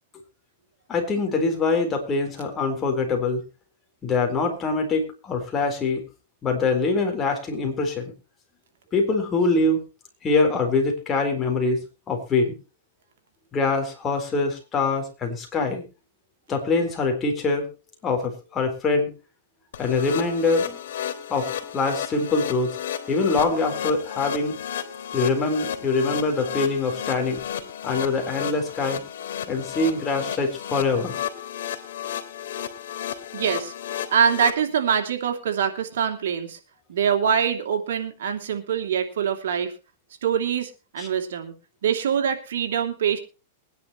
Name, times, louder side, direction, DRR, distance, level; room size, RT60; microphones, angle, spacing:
voice 1, 0.9-3.4 4.0-6.0 6.4-8.1 8.9-9.8 10.2-12.5 13.5-15.8 16.5-17.7 18.0-19.1 19.8-20.8 21.3-22.8 23.1-24.6 25.1-27.4 27.8-29.0 29.5-31.2 41.0-41.1, left 3 dB, 20° left, 3 dB, 4.1 m, -24 dB
sound 1, 19.7-34.5, left 9 dB, 80° left, 2.8 m, -33 dB
voice 2, 33.3-33.7 34.1-36.6 36.9-39.7 40.2-41.5 41.8-43.2, right 7 dB, 80° right, 5 dB, 2.8 m, -24 dB
22.0 x 10.5 x 3.1 m, 0.31 s
supercardioid pair, 145°, 0 cm